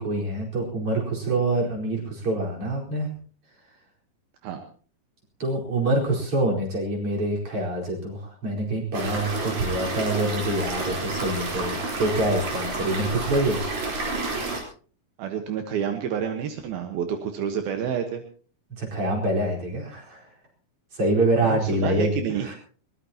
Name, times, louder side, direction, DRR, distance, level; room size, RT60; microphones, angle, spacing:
voice 1, 0.0-3.1 5.4-13.6 18.8-20.2 20.9-22.5, right 1 dB, 35° right, -1 dB, 5.4 m, -26 dB
sound 1, 8.9-14.6, right 3 dB, 60° right, 5.8 m, -29 dB
voice 2, 15.2-18.2 21.4-22.5, right 8 dB, 75° right, 5 dB, 3.2 m, -29 dB
22.0 x 19.5 x 2.9 m, 0.42 s
omnidirectional pair, 4.4 m